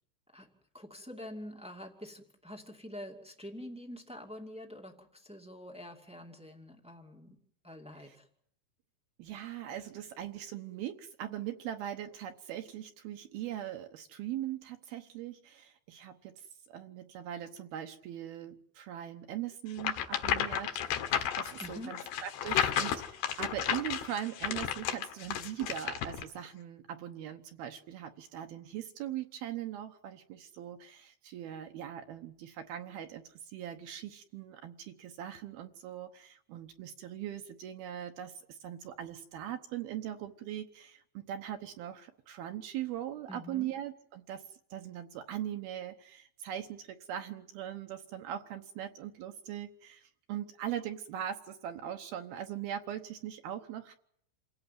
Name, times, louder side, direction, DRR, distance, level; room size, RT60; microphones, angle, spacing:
voice 1, 0.7-7.3 7.6-8.3 21.6-22.0 43.3-43.7, equal, 5° right, 2 dB, 0.6 m, -46 dB
voice 2, 9.2-20.7 21.1-44.4 44.7-53.9, right 11 dB, 70° right, 6 dB, 2.6 m, -40 dB
sound 1, 19.8-26.2, left 9 dB, 70° left, 3.2 m, -33 dB
28.5 x 17.0 x 9.3 m, 0.70 s
omnidirectional pair, 5.2 m